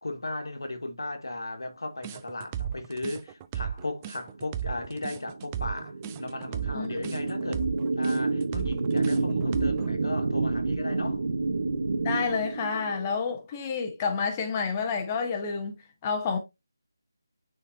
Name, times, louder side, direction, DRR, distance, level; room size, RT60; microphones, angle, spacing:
voice 1, 0.0-11.2, left 2 dB, 80° left, 1.5 m, -36 dB
sound 1, 2.0-9.9, right 9 dB, 15° right, 0.3 m, -35 dB
sound 2, 4.4-13.2, right 3 dB, 55° right, 0.8 m, -29 dB
voice 2, 6.7-7.3 12.0-16.4, left 5 dB, 20° left, 0.9 m, -30 dB
9.0 x 3.9 x 2.6 m
figure-of-eight pair, 160°, 2 cm